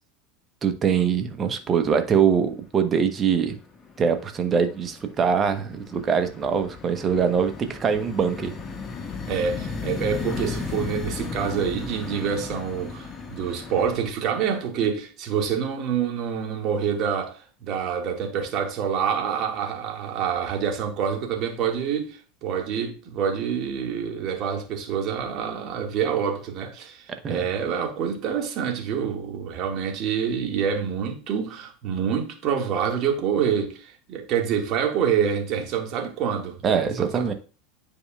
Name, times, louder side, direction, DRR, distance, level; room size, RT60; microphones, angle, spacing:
voice 1, 0.6-3.6 4.0-8.5 27.2-27.4 36.6-37.3, right 7 dB, 30° right, 1.1 m, -23 dB
sound 1, 1.0-1.6 1.9-2.6 3.0-14.1, left 4 dB, 25° left, 1.7 m, -35 dB
voice 2, 9.3-37.3, right 7 dB, 45° right, 1.9 m, -27 dB
9.8 x 4.9 x 2.4 m
figure-of-eight pair, 80°, 0 cm